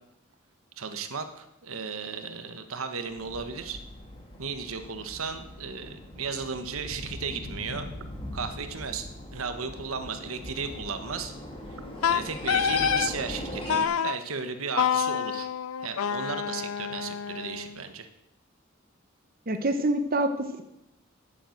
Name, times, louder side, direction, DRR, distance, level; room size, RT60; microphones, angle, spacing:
voice 1, 0.8-3.8 4.4-7.9 8.3-11.3 11.7-11.8 12.1-15.5 15.8-18.1, right 5 dB, 85° right, 8 dB, 1.3 m, -35 dB
sound 1, 3.1-13.8, left 1 dB, 25° left, 2.9 m, -40 dB
Wind instrument woodwind instrument, 12.0-13.1 13.7-14.1 14.8-17.8, left 7 dB, 90° left, 0.5 m, -27 dB
voice 2, 19.5-20.6, right 1 dB, 45° right, 7 dB, 1.0 m, -26 dB
10.0 x 9.6 x 7.8 m, 0.87 s
head